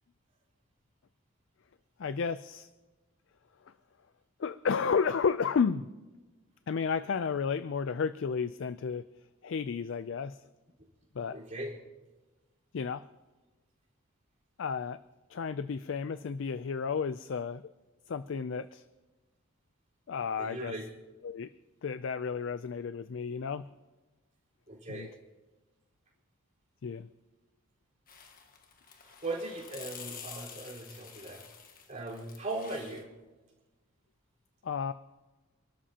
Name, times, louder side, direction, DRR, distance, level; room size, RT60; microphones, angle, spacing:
voice 1, 2.0-2.7 4.4-5.9 6.7-9.1 9.4-10.4 11.2-11.4 12.7-13.0 14.6-15.0 15.3-17.6 18.1-18.8 20.1-20.7 21.2-21.5 21.8-23.7 24.9-25.1 26.8-27.1 34.6-34.9, left 6 dB, 60° left, 13 dB, 0.4 m, -32 dB
voice 2, 11.3-11.8 20.4-20.9 24.7-25.1 29.0-31.4 31.9-33.1, right 2 dB, 35° right, -4 dB, 4.3 m, -39 dB
sound 1, 28.1-33.0, left 7 dB, 40° left, 1.6 m, -49 dB
27.5 x 12.5 x 2.9 m, 1.2 s
head